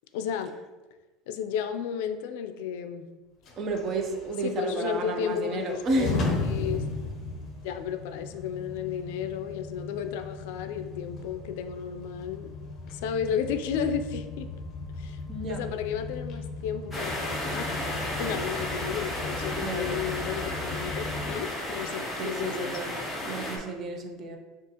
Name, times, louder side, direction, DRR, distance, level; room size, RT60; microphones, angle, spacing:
voice 1, 0.1-0.5 1.3-3.1 4.4-6.2 6.4-6.8 7.6-12.5 12.9-14.5 15.0-15.2 15.5-22.8, left 8 dB, 80° left, 0.3 m, -33 dB
sound 1, 3.4-21.3, left 3 dB, 35° left, 0.7 m, -37 dB
voice 2, 3.6-6.3 15.3-15.7 19.5-20.1 22.2-22.9 23.3-24.4, right 2 dB, 35° right, 0.5 m, -31 dB
sound 2, 16.9-23.6, left 1 dB, 5° left, 0.8 m, -33 dB
6.0 x 2.4 x 2.8 m
cardioid pair, 160°, 0 cm